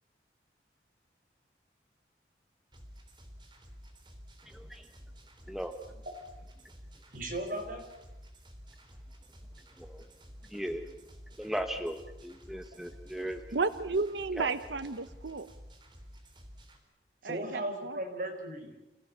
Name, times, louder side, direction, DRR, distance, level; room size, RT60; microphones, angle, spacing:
sound 1, 2.7-16.8, equal, 25° right, 3.5 m, -52 dB
voice 1, 4.5-4.9 5.5-5.7 9.8-10.1 10.5-10.9 11.4-13.6 14.4-14.5, equal, ahead, 6 dB, 1.2 m, -37 dB
voice 2, 7.1-7.8 17.2-18.7, right 1 dB, 50° right, 3 dB, 4.9 m, -36 dB
voice 3, 13.5-15.5 17.2-18.0, right 4 dB, 85° right, 13 dB, 0.8 m, -33 dB
28.5 x 16.5 x 8.6 m, 0.98 s
head